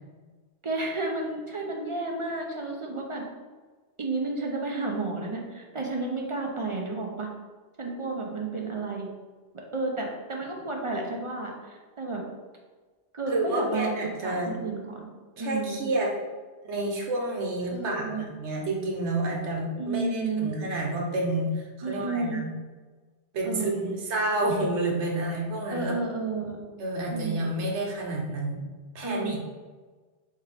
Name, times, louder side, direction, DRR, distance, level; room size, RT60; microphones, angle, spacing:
voice 1, 0.6-3.2 4.0-7.3 7.8-9.1 9.5-12.2 13.1-14.0 14.2-15.1 15.4-15.9 17.7-18.2 19.8-20.5 21.8-22.4 23.4-23.9 25.7-26.6 27.1-27.5 29.0-29.4, right 3 dB, 40° right, 0 dB, 0.5 m, -31 dB
voice 2, 13.3-14.6 15.4-16.1 16.6-22.5 23.3-26.0 26.8-28.6 28.9-29.4, right 2 dB, 75° right, 0 dB, 1.1 m, -29 dB
4.2 x 3.6 x 3.3 m, 1.4 s
omnidirectional pair, 1.2 m